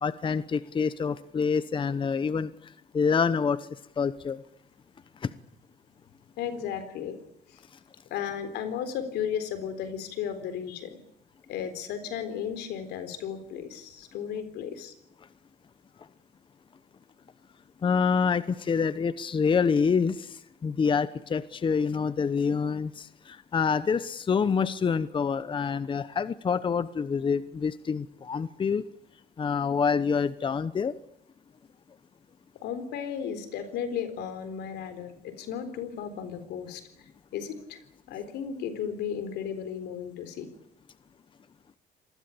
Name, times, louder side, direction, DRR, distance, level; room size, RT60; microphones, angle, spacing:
voice 1, 0.0-2.5 2.9-3.6 4.0-4.4 5.2-5.3 17.8-20.4 20.6-28.8 29.4-30.9, left 6 dB, 30° left, 14 dB, 0.9 m, -26 dB
voice 2, 6.4-7.2 7.5-7.6 8.1-11.0 11.5-14.9 32.6-36.8 37.3-37.8 38.1-40.5, left 8 dB, 80° left, 11 dB, 4.0 m, -34 dB
26.5 x 20.0 x 8.6 m, 0.77 s
cardioid pair, 110°, 17 cm